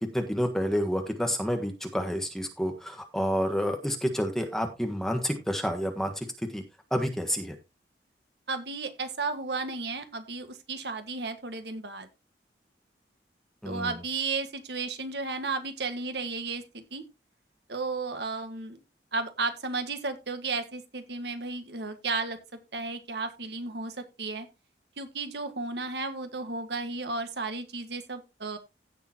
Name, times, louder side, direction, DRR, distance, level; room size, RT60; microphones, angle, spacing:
voice 1, 0.1-6.3 6.5-6.6 6.9-7.5 13.6-13.9, equal, ahead, 4 dB, 1.4 m, -29 dB
voice 2, 8.5-12.1 13.6-17.0 17.7-18.8 19.1-22.4 22.7-24.5 25.0-28.6, right 3 dB, 70° right, 8 dB, 1.7 m, -33 dB
16.0 x 6.8 x 2.9 m, 0.25 s
head